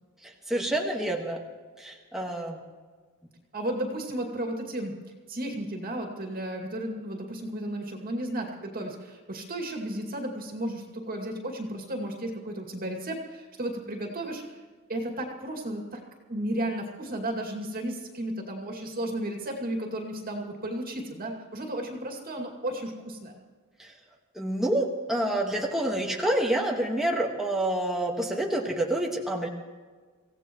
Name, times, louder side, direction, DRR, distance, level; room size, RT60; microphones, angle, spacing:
voice 1, 0.2-1.4 1.8-2.6 23.8-23.9 24.3-29.5, right 1 dB, ahead, -1 dB, 1.6 m, -28 dB
voice 2, 3.5-5.0 5.3-16.0 16.3-23.3, right 1 dB, 40° right, 1 dB, 2.4 m, -34 dB
25.0 x 16.5 x 3.1 m, 1.5 s
head